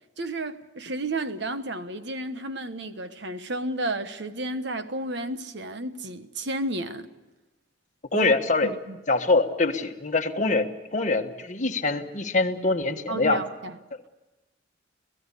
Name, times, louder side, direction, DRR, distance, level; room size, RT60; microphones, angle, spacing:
voice 1, 0.2-7.1 8.1-8.3 8.6-9.0 13.1-13.7, right 2 dB, 60° right, 1.3 m, -32 dB
voice 2, 8.1-8.7 9.1-13.4, left 3 dB, 40° left, 1.4 m, -24 dB
27.0 x 17.0 x 8.4 m
head